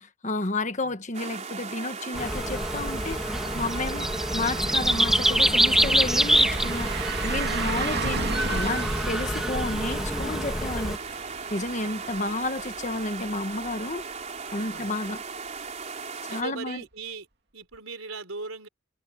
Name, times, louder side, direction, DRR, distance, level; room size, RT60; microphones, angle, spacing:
voice 1, 0.0-3.2 3.5-11.0 11.5-14.0 14.5-15.2 16.2-16.8, left 2 dB, 35° left, 1.4 m, -31 dB
sound 1, 1.1-16.4, right 5 dB, 35° right, 4.3 m, -37 dB
sound 2, 2.1-11.0, equal, ahead, 1.7 m, -25 dB
sound 3, 4.7-14.5 14.9-15.0 17.7-17.8, right 5 dB, 50° right, 2.4 m, -36 dB
voice 2, 16.3-17.3 17.5-18.7, right 3 dB, 80° right, 3.9 m, -39 dB
head